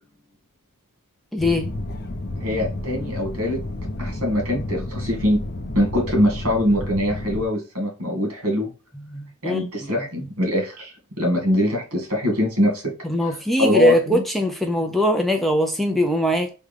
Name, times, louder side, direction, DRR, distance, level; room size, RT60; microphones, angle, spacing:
voice 1, 1.3-1.7 9.1-9.9 13.0-16.5, equal, ahead, 0.3 m, -21 dB
sound 1, 1.4-7.5, left 1 dB, 50° left, 0.6 m, -31 dB
voice 2, 2.4-3.6 4.0-5.4 5.7-8.7 9.4-12.9 13.2-14.2, left 1 dB, 70° right, 1.6 m, -23 dB
3.6 x 2.2 x 3.2 m
head